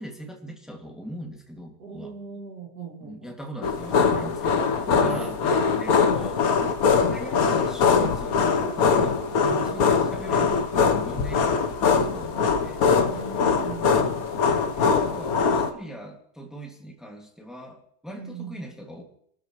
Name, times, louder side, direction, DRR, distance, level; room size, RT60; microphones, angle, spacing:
voice 1, 0.0-2.1 3.0-6.5 7.0-12.8 14.0-14.1 14.7-19.0, right 1 dB, ahead, 1 dB, 2.1 m, -40 dB
voice 2, 1.8-3.4 5.1-5.4 9.6-9.8 13.1-14.1 18.1-18.6, right 5 dB, 70° right, 1 dB, 3.2 m, -39 dB
sound 1, 3.6-15.7, left 5 dB, 65° left, 1.5 m, -22 dB
27.0 x 13.0 x 3.1 m, 0.66 s
omnidirectional pair, 1.7 m